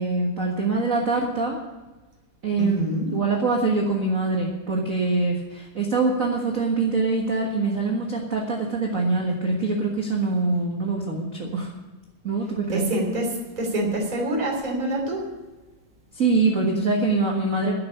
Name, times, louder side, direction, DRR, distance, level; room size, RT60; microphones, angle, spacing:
voice 1, 0.0-1.6 2.4-2.8 3.1-11.7 12.2-12.9 16.1-17.7, right 3 dB, 40° right, -1 dB, 1.2 m, -24 dB
voice 2, 2.6-3.1 12.7-15.2, right 1 dB, 15° right, -1 dB, 2.7 m, -26 dB
11.0 x 7.8 x 9.9 m, 1.2 s
omnidirectional pair, 3.6 m